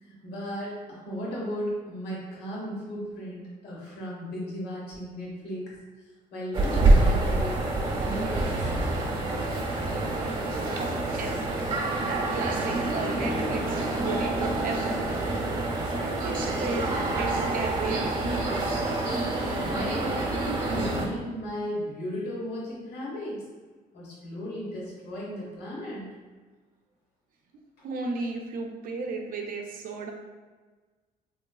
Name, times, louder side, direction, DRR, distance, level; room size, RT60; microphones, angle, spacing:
voice 1, 0.0-5.7 6.3-8.7 19.6-20.2 20.7-23.4 23.9-26.1 27.8-27.9, equal, 75° left, -5 dB, 1.3 m, -35 dB
sound 1, 6.5-21.1, right 2 dB, 30° right, 0.8 m, -27 dB
voice 2, 10.7-11.4 12.0-15.0 15.9-16.9 17.2-18.5 27.8-30.1, right 3 dB, 55° right, 2 dB, 0.6 m, -34 dB
3.8 x 3.1 x 2.3 m, 1.4 s
cardioid pair, 110°, 17 cm